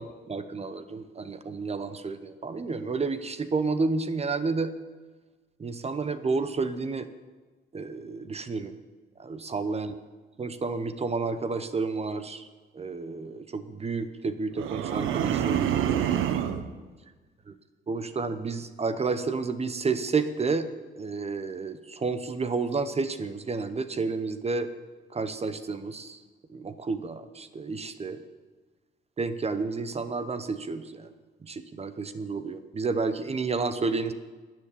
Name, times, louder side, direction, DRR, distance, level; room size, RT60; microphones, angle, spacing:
voice 1, 0.0-4.7 5.6-7.1 7.7-8.7 9.2-10.0 10.4-12.5 12.7-16.1 17.5-17.6 17.9-20.7 21.0-24.7 25.1-26.2 26.5-28.2 29.2-31.1 31.4-34.1, right 4 dB, 30° right, 11 dB, 0.8 m, -30 dB
sound 1, 14.6-16.7, right 10 dB, 90° right, 0.9 m, -27 dB
12.5 x 7.6 x 9.8 m, 1.3 s
cardioid pair, 90°, 20 cm